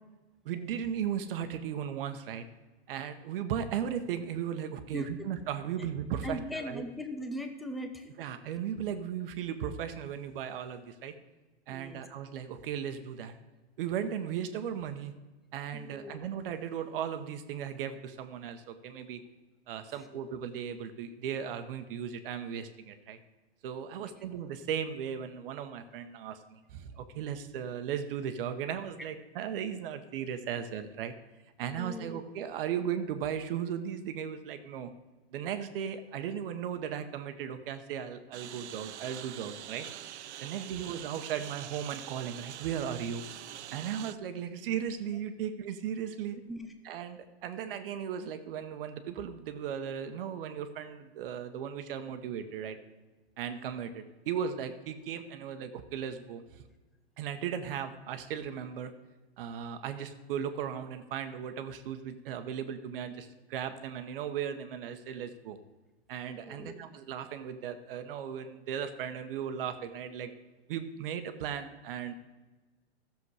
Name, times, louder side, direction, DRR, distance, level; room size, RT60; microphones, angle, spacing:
voice 1, 0.4-2.4 2.9-6.8 8.2-11.1 11.7-13.4 13.8-15.1 15.5-19.2 19.7-23.2 23.6-31.1 31.6-34.9 35.3-39.9 40.4-43.2 43.7-46.4 46.8-52.8 53.4-56.6 57.2-58.9 59.4-65.6 66.1-70.3 70.7-72.1, right 8 dB, 55° right, 8 dB, 1.0 m, -36 dB
voice 2, 4.9-5.3 6.2-8.1 11.7-12.0 15.7-16.2 24.0-24.2 31.8-32.2 40.7-41.0 46.5-46.7 66.5-66.9, equal, ahead, 5 dB, 0.4 m, -40 dB
Engine, 38.3-44.1, right 12 dB, 85° right, 0.5 m, -44 dB
13.5 x 7.0 x 4.8 m, 1.2 s
hypercardioid pair, 140°, 33 cm